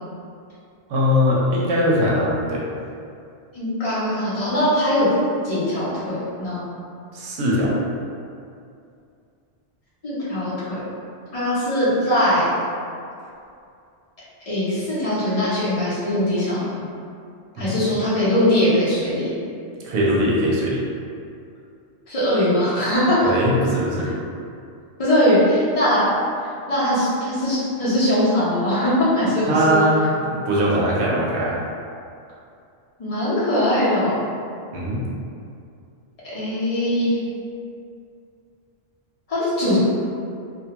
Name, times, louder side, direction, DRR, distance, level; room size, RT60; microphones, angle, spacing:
voice 1, 0.9-2.6 7.1-7.7 17.5-17.8 19.8-20.8 23.2-24.1 29.4-30.1 30.4-31.6 34.7-35.0, equal, 70° right, -5 dB, 0.8 m, -20 dB
voice 2, 3.5-5.1 5.4-6.6 10.0-10.8 11.3-12.5 14.5-16.7 17.6-19.3 22.1-23.2 25.0-26.1 26.7-29.8 33.0-34.2 36.2-37.2 39.3-39.8, left 1 dB, 35° left, -10 dB, 0.7 m, -21 dB
2.3 x 2.1 x 2.8 m, 2.5 s
omnidirectional pair, 1.2 m